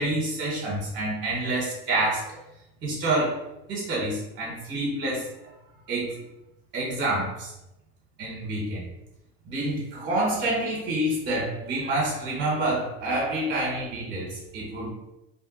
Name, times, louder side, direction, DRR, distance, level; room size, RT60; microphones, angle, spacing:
voice 1, 0.0-2.4 2.8-3.4 3.7-5.3 5.9-6.2 6.7-7.5 8.2-8.8 9.5-14.9, right 1 dB, 35° right, -3 dB, 1.0 m, -27 dB
2.7 x 2.1 x 3.9 m, 0.90 s
supercardioid pair, 135°, 32 cm